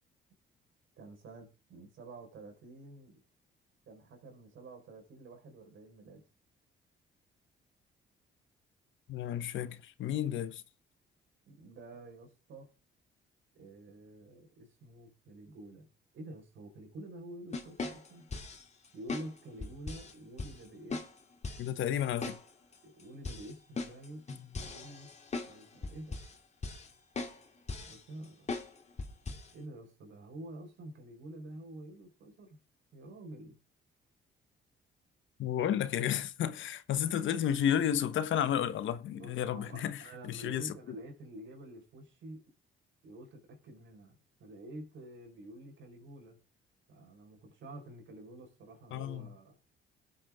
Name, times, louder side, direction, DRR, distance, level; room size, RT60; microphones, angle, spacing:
voice 1, 1.0-3.2 3.9-6.2 11.4-12.7 13.5-15.9 16.1-18.3 18.9-21.1 21.7-22.1 22.8-24.2 24.6-25.1 25.4-26.2 27.8-28.5 29.5-32.6 32.9-33.6 39.1-42.4 43.0-46.4 46.9-49.6, right 1 dB, 70° right, 4.8 m, -49 dB
voice 2, 9.1-10.6 21.6-22.4 35.4-40.7 48.9-49.3, left 10 dB, 75° left, 1.2 m, -32 dB
sound 1, 17.5-18.6 19.1-19.3 19.6-20.1 20.4-20.5 20.9-21.1 21.4-21.7 22.2-22.4 22.7-22.8 23.2-25.5 25.8-26.3 26.6-26.9 27.2-27.4 27.7-28.0 28.5-28.7 29.0-29.5, left 3 dB, 35° left, 2.6 m, -38 dB
21.0 x 8.6 x 3.7 m
cardioid pair, 90°, 20 cm